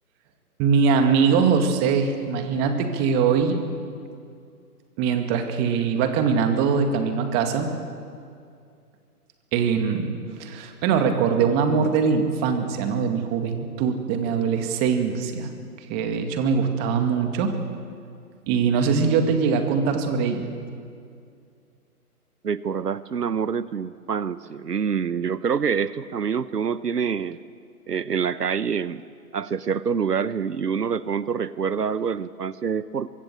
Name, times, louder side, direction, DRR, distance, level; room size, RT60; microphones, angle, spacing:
voice 1, 0.6-3.6 5.0-7.7 9.5-10.1 10.4-15.5 15.9-17.6 18.5-20.5, right 6 dB, 20° right, 6 dB, 2.1 m, -22 dB
voice 2, 22.4-27.4 27.9-29.0 29.3-33.1, right 6 dB, 85° right, 16 dB, 1.0 m, -26 dB
24.5 x 22.0 x 7.7 m, 2.3 s
figure-of-eight pair, 140°, 46 cm